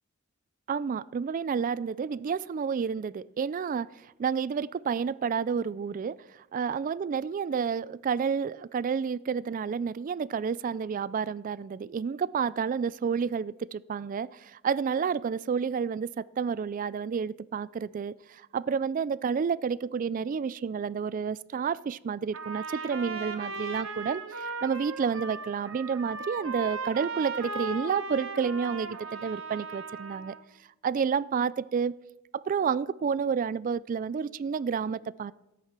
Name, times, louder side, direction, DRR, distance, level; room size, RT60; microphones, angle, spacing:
voice 1, 0.7-3.9 4.2-30.4 30.8-31.9 32.3-35.3, right 6 dB, 40° right, 20 dB, 0.3 m, -30 dB
Trumpet, 22.3-30.4, right 4 dB, 75° right, 1.2 m, -37 dB
13.0 x 8.6 x 6.0 m, 0.96 s
head